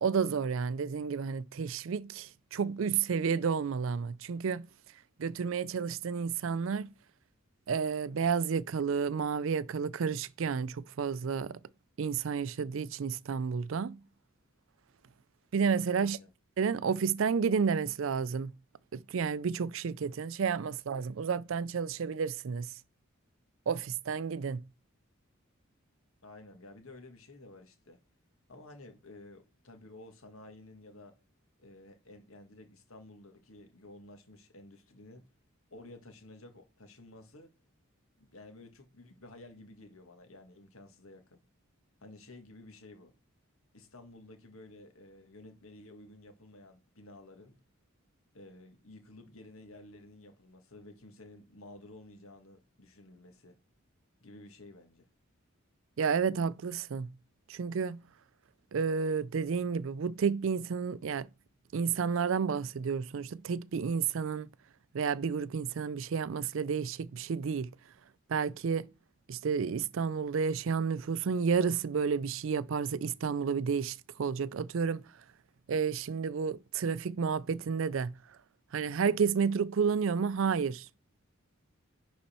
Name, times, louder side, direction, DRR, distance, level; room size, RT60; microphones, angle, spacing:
voice 1, 0.0-4.7 5.2-6.9 7.7-11.6 12.0-14.0 15.5-16.2 16.6-18.5 18.9-22.7 23.7-24.6 56.0-57.1 57.5-58.0 58.7-61.3 61.7-64.5 64.9-67.7 68.3-68.9 69.3-75.0 75.7-78.1 78.7-80.9, right 6 dB, 65° right, 0.4 m, -31 dB
voice 2, 16.0-16.3 26.2-28.0 28.5-31.2 31.6-35.3 35.7-37.5 38.2-41.4 42.0-43.1 43.7-47.6 48.3-53.6 54.2-55.1, left 2 dB, 80° left, 1.8 m, -52 dB
10.5 x 4.2 x 4.3 m
head